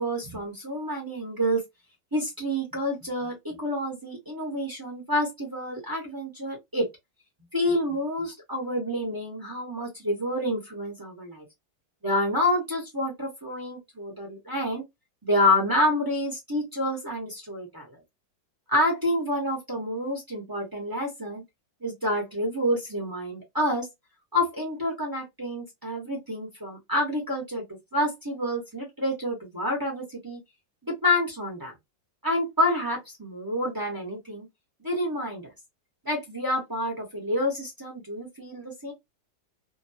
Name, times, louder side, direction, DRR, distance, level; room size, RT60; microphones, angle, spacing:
voice 1, 0.0-1.6 2.1-6.9 7.5-11.4 12.0-14.8 15.2-18.0 18.7-21.4 21.8-23.9 24.3-27.6 27.9-30.4 30.8-31.7 32.2-34.5 34.8-35.5 36.0-38.9, left 1 dB, 20° right, 0.6 m, -28 dB
2.8 x 2.2 x 2.7 m
omnidirectional pair, 1.9 m